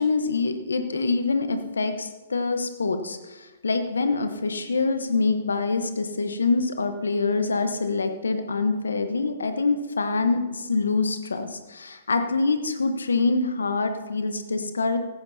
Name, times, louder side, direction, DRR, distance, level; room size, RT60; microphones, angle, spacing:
voice 1, 0.0-15.0, left 3 dB, 75° left, 8 dB, 1.1 m, -25 dB
16.0 x 15.0 x 2.8 m, 1.2 s
figure-of-eight pair, 120°, 0 cm